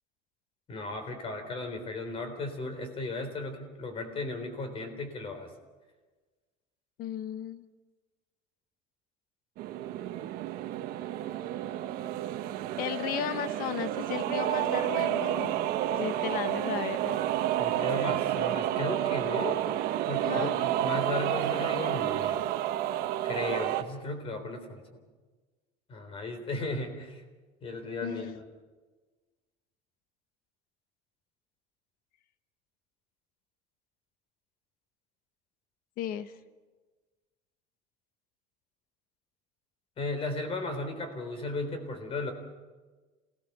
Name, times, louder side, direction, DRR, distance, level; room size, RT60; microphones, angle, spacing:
voice 1, 0.7-5.5 17.6-19.6 20.1-22.5 23.2-25.0 25.9-27.2 27.6-28.4 40.0-42.3, left 2 dB, 35° left, 7 dB, 3.9 m, -35 dB
voice 2, 7.0-7.6 12.8-15.5 15.9-17.2 20.2-20.6 28.0-28.4 36.0-36.3, left 11 dB, 60° left, 11 dB, 1.2 m, -35 dB
sound 1, 9.6-23.8, right 12 dB, 65° right, 1.3 m, -30 dB
27.5 x 18.0 x 6.7 m, 1.3 s
cardioid pair, 145°, 17 cm